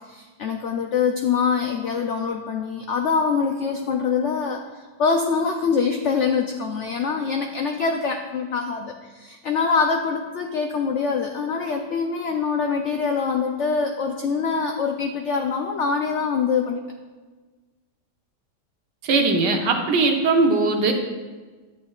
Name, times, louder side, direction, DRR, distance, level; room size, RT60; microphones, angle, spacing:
voice 1, 0.0-16.8, left 5 dB, 70° left, 3 dB, 0.7 m, -24 dB
voice 2, 19.0-20.9, right 3 dB, 85° right, 2 dB, 1.6 m, -20 dB
11.0 x 8.4 x 2.4 m, 1.3 s
omnidirectional pair, 1.8 m